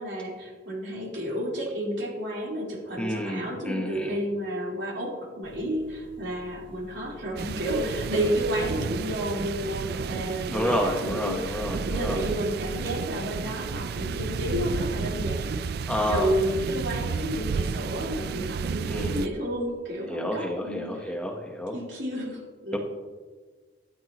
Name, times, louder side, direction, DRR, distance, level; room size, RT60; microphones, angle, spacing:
voice 1, 0.0-21.1 21.7-22.8, equal, 70° right, -4 dB, 3.9 m, -31 dB
voice 2, 3.0-4.2 10.5-12.2 15.9-16.3 18.8-19.3 20.1-21.7 22.7-22.8, left 1 dB, 5° left, 1 dB, 1.1 m, -29 dB
sound 1, 5.4-13.0, equal, 80° left, 1.5 m, -50 dB
sound 2, 7.4-19.3, right 5 dB, 55° right, 0.3 m, -32 dB
13.5 x 12.0 x 3.0 m, 1.4 s
head